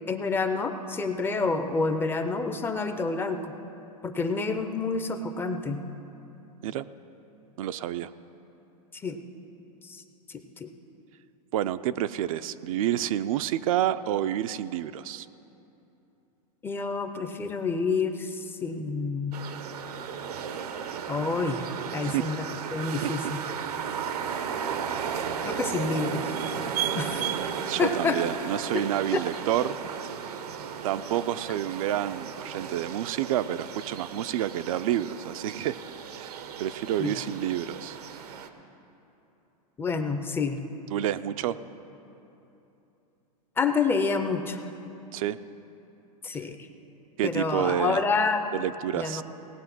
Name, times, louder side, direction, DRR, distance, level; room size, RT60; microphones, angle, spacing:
voice 1, 0.1-3.5 4.0-5.8 9.0-9.2 9.8-10.0 10.3-10.7 16.6-19.3 21.1-22.4 22.7-23.4 25.5-26.3 27.0-27.2 27.8-28.2 37.0-37.1 39.8-40.6 43.6-44.6 46.2-46.6 47.2-48.6 48.9-49.2, left 4 dB, 10° left, 7 dB, 0.5 m, -28 dB
voice 2, 7.6-8.1 11.5-15.3 22.0-22.3 23.0-23.4 27.7-29.8 30.8-35.8 36.1-38.0 40.9-41.6 45.1-45.4 47.2-48.0 48.5-49.2, right 11 dB, 60° right, 12 dB, 0.4 m, -29 dB
sound 1, 19.3-38.5, right 7 dB, 85° right, 0.9 m, -35 dB
18.0 x 7.5 x 6.0 m, 2.9 s
supercardioid pair, 140°, 20 cm